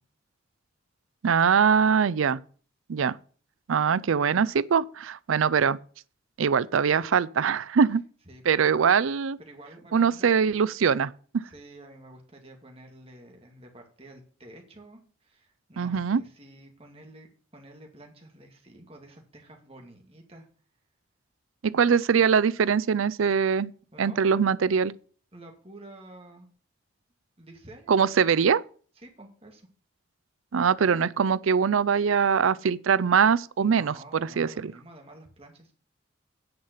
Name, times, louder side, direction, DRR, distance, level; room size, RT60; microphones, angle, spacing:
voice 1, 1.2-2.4 2.9-3.2 3.7-5.8 6.4-8.0 8.5-9.4 9.9-11.1 15.8-16.2 21.6-23.7 24.0-24.9 27.9-28.6 30.5-34.7, right 6 dB, 85° right, 0.5 m, -22 dB
voice 2, 9.4-10.3 11.4-17.3 17.5-20.5 23.9-24.6 25.3-26.5 27.4-28.3 29.0-29.7 33.6-35.7, right 1 dB, 30° right, 2.3 m, -49 dB
9.6 x 5.7 x 8.1 m
head